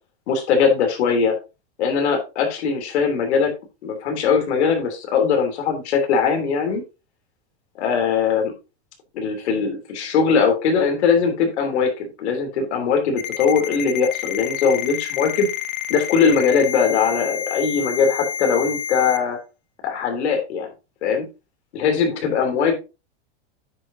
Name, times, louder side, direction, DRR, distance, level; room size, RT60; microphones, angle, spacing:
voice 1, 0.3-1.4 1.8-3.5 3.8-6.8 7.8-8.5 9.1-15.5 15.9-19.4 19.8-20.7 21.0-21.3 21.7-22.8, left 6 dB, 90° left, 3 dB, 3.4 m, -20 dB
Ringtone, 13.2-19.2, left 9 dB, 35° left, 0.9 m, -29 dB
9.5 x 7.5 x 2.8 m, 0.28 s
supercardioid pair, 165°, 32 cm